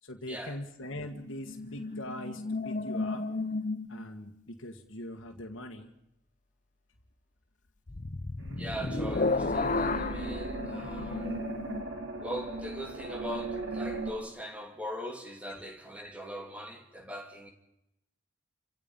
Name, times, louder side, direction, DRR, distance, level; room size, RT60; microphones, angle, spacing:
voice 1, 0.0-3.2 3.9-5.9, left 1 dB, 90° left, 1.9 m, -42 dB
sound 1, 0.8-4.3 7.9-11.8, left 3 dB, 40° left, 0.7 m, -33 dB
sound 2, 8.4-14.1, right 2 dB, 90° right, 4.4 m, -38 dB
voice 2, 8.6-11.3 12.2-17.5, equal, 5° right, 2.7 m, -40 dB
30.0 x 16.5 x 5.5 m
head